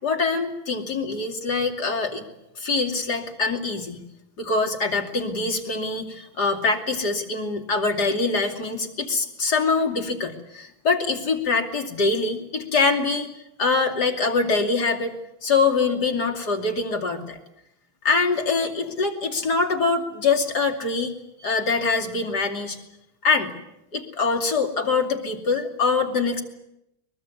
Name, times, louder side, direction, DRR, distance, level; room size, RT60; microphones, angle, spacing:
voice 1, 0.0-2.2 2.6-4.0 4.4-13.3 13.6-15.1 15.4-17.4 18.0-21.1 21.4-22.8 23.2-23.5 23.9-26.4, left 4 dB, 50° left, 3 dB, 3.2 m, -24 dB
23.0 x 22.5 x 8.4 m, 0.84 s
omnidirectional pair, 2.3 m